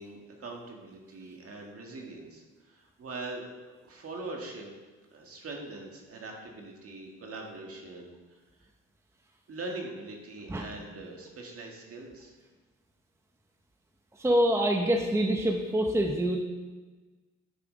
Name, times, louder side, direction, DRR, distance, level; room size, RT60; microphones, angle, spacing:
voice 1, 0.0-4.7 5.1-8.4 9.5-12.3, right 2 dB, 50° right, 1 dB, 1.9 m, -42 dB
voice 2, 14.2-16.4, right 1 dB, 10° right, 3 dB, 0.8 m, -25 dB
9.9 x 5.7 x 4.0 m, 1.3 s
cardioid pair, 90°, 30 cm